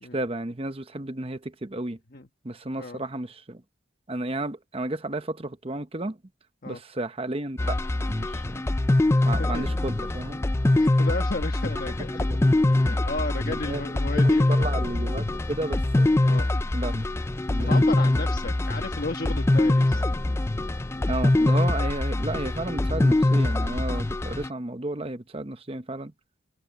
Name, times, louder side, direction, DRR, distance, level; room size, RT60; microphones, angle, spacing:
voice 1, 0.1-2.0 2.4-3.6 4.1-6.2 6.6-7.6 7.9-8.6 9.3-10.4 12.3-12.4 13.4-13.8 14.1-16.1 16.7-17.0 17.5-17.9 21.1-26.1, right 2 dB, 25° right, 0.9 m, -32 dB
sound 1, 7.6-24.5, left 2 dB, 10° left, 0.3 m, -23 dB
voice 2, 9.1-9.8 10.8-12.3 12.8-14.7 16.2-16.5 17.6-20.0, left 2 dB, 45° left, 1.3 m, -34 dB
open air
head